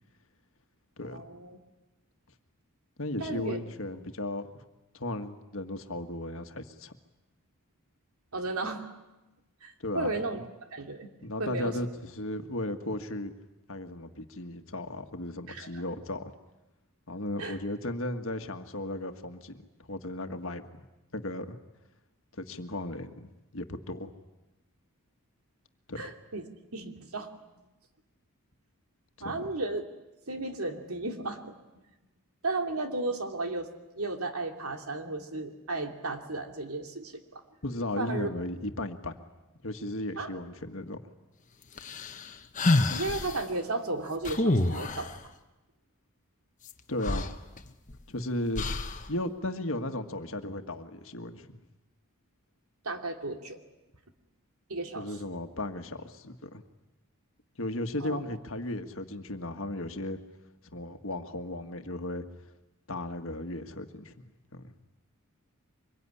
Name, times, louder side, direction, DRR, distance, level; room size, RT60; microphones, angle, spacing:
voice 1, 1.0-1.6 3.2-3.6 8.3-8.9 9.6-10.4 10.7-11.8 15.5-15.7 17.4-17.6 26.0-26.5 26.7-27.4 29.2-29.8 30.3-31.6 32.4-33.7 34.0-37.4 38.0-38.3 40.2-40.3 42.9-45.1 52.8-53.6 54.7-55.1 58.0-58.2, right 2 dB, 75° right, 4 dB, 2.8 m, -34 dB
voice 2, 3.0-4.5 4.9-6.9 9.8-10.1 11.2-13.3 13.7-16.2 17.1-19.6 19.9-20.9 21.1-21.6 22.4-23.3 23.5-24.1 25.9-26.1 29.2-29.4 37.6-39.1 39.6-41.0 46.9-47.3 48.1-48.7 49.1-51.6 55.0-56.6 57.6-60.2 60.7-62.2 62.9-64.2 64.5-64.7, left 1 dB, 60° left, 7 dB, 1.7 m, -35 dB
sound 1, 41.8-43.4 44.2-45.2 46.7-46.8 47.0-48.0 48.5-49.1, left 2 dB, 35° left, 1.3 m, -28 dB
25.0 x 22.5 x 9.9 m, 1.0 s
head